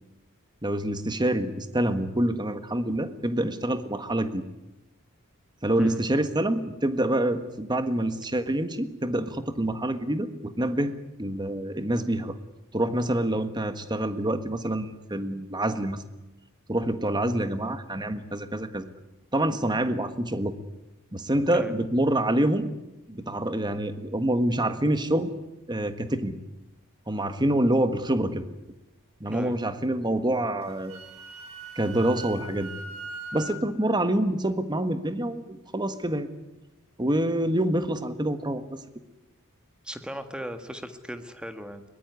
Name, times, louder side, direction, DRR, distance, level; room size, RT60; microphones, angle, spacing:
voice 1, 0.6-4.4 5.6-10.9 11.2-12.3 12.7-16.1 16.7-18.9 19.3-20.5 21.1-22.7 23.1-25.3 25.7-26.3 27.1-28.5 29.2-31.0 31.7-32.7 33.3-36.3 37.0-38.8, right 1 dB, 20° right, 10 dB, 1.6 m, -26 dB
voice 2, 29.3-29.6 39.8-41.8, equal, 5° right, 8 dB, 1.6 m, -36 dB
Wind instrument woodwind instrument, 30.6-33.6, right 3 dB, 80° right, 3.5 m, -40 dB
22.0 x 20.0 x 9.7 m, 0.97 s
head